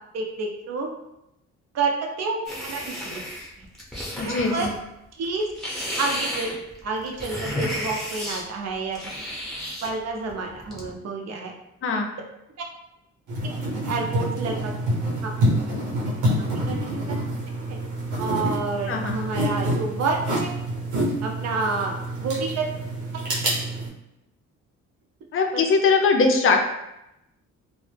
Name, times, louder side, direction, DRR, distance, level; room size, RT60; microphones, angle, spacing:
voice 1, 0.1-0.9 1.7-3.2 4.2-4.7 5.2-5.5 6.0-6.5 6.8-9.0 9.8-11.5 13.8-14.7 16.4-17.2 17.7-17.8 18.2-20.5 21.2-22.7 25.5-25.6, right 3 dB, 60° right, 1 dB, 0.6 m, -29 dB
sound 1, 2.5-4.8 5.2-8.4 8.9-9.9 10.3-10.9, equal, ahead, 0.7 m, -32 dB
voice 2, 4.2-4.7 11.8-12.1 18.8-19.2 25.3-26.6, left 4 dB, 45° left, 3 dB, 0.5 m, -21 dB
sound 2, 13.3-23.9, right 1 dB, 80° right, 0.9 m, -27 dB
2.0 x 2.0 x 3.2 m, 0.87 s
cardioid pair, 90°, 30 cm